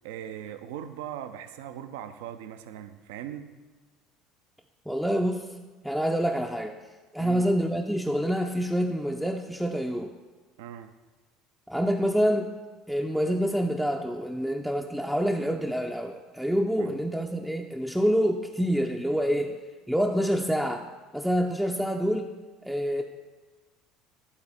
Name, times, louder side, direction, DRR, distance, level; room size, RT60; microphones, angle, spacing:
voice 1, 0.0-3.5 7.2-7.5 10.6-10.9 16.8-17.0, right 10 dB, 65° right, 10 dB, 0.4 m, -40 dB
voice 2, 4.9-5.5 5.8-6.8 7.1-10.1 11.7-12.5 12.9-19.6 19.9-20.8 21.1-22.3 22.6-23.0, equal, ahead, 2 dB, 0.4 m, -27 dB
11.5 x 4.0 x 4.2 m, 1.3 s
figure-of-eight pair, 65°, 0 cm